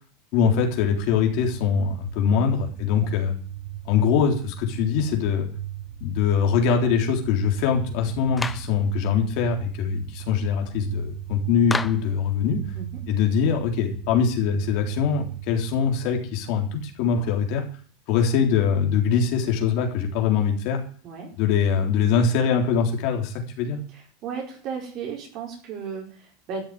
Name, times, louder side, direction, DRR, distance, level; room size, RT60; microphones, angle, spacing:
voice 1, 0.3-3.3 3.9-5.5 6.0-12.6 13.1-17.6 18.1-20.8 21.4-23.8, left 6 dB, 55° left, 2 dB, 3.7 m, -23 dB
sound 1, 0.7-17.5, right 12 dB, 85° right, 5.3 m, -38 dB
Clapping, 8.4-8.7 11.7-12.1, left 3 dB, 10° left, 0.6 m, -29 dB
voice 2, 23.9-26.6, right 6 dB, 40° right, -1 dB, 4.8 m, -34 dB
13.0 x 6.8 x 9.4 m, 0.43 s
supercardioid pair, 145°, 0 cm